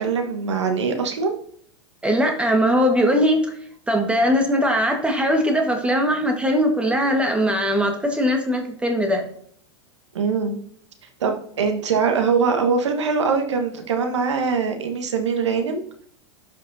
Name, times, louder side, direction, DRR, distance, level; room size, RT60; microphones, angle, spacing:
voice 1, 0.0-1.4 10.1-10.6 11.2-15.8, right 5 dB, 85° right, 5 dB, 1.4 m, -22 dB
voice 2, 2.0-3.5 3.9-9.2, equal, 5° right, 3 dB, 1.5 m, -20 dB
12.5 x 5.2 x 2.7 m, 0.62 s
hypercardioid pair, 100°, 15 cm